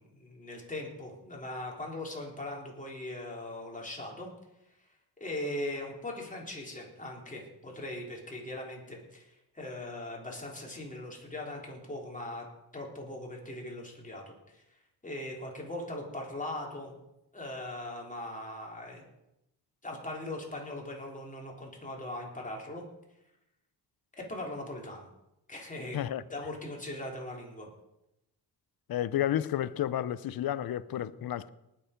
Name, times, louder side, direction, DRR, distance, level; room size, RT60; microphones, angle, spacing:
voice 1, 0.0-4.3 5.2-12.4 12.7-17.0 17.3-19.1 19.8-22.8 24.2-25.1 25.5-26.0 26.3-27.7, left 1 dB, 20° left, 3.7 m, -40 dB
voice 2, 28.9-31.5, left 11 dB, 60° left, 0.7 m, -31 dB
19.0 x 7.0 x 5.2 m
cardioid pair, 75°, 42 cm